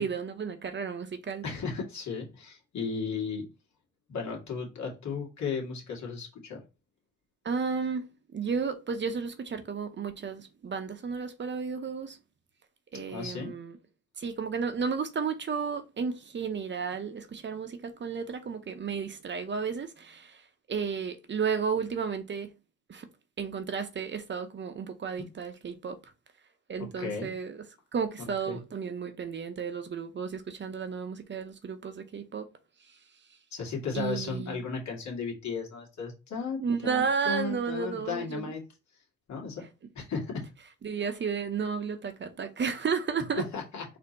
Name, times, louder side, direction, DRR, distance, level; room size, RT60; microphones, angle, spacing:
voice 1, 0.0-1.4 7.4-12.2 12.9-13.8 14.2-20.4 20.7-22.5 22.9-23.1 23.4-26.0 26.7-27.7 27.9-32.5 33.9-34.6 36.6-38.5 40.8-43.4, right 6 dB, 40° right, 0.7 m, -33 dB
voice 2, 1.4-3.5 4.1-6.6 13.1-13.6 25.2-25.3 27.0-27.3 28.5-28.6 33.5-38.6 39.3-39.7 40.0-40.5 43.4-43.9, left 5 dB, 65° left, 1.9 m, -35 dB
4.3 x 2.8 x 4.1 m
cardioid pair, 90°, 30 cm